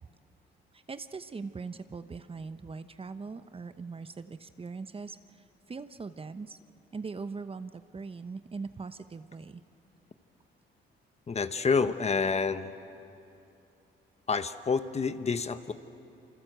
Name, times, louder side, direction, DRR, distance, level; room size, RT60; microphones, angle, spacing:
voice 1, 0.7-5.2 5.7-6.6 6.9-9.6, right 4 dB, 30° right, 11 dB, 0.9 m, -41 dB
voice 2, 11.3-12.7 14.3-15.7, left 5 dB, 35° left, 11 dB, 1.1 m, -28 dB
28.0 x 25.5 x 8.0 m, 2.8 s
cardioid pair, 90°, 20 cm